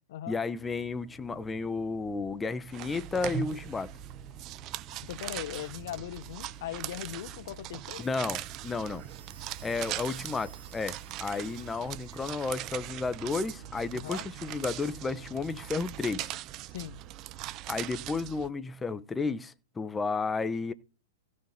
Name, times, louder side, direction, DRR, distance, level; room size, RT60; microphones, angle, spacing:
voice 1, 0.3-3.9 8.0-9.1 9.6-16.3 17.7-20.7, left 4 dB, 10° left, 1.0 m, -32 dB
sound 1, 0.6-16.4, right 2 dB, 20° right, 2.6 m, -55 dB
sound 2, 2.7-18.5, right 14 dB, 35° right, 0.5 m, -40 dB
voice 2, 5.0-8.0 13.9-14.3 16.7-17.0, left 13 dB, 60° left, 0.8 m, -39 dB
sound 3, 7.9-12.5, right 8 dB, 75° right, 2.4 m, -55 dB
16.0 x 6.5 x 4.2 m
hypercardioid pair, 135°, 0 cm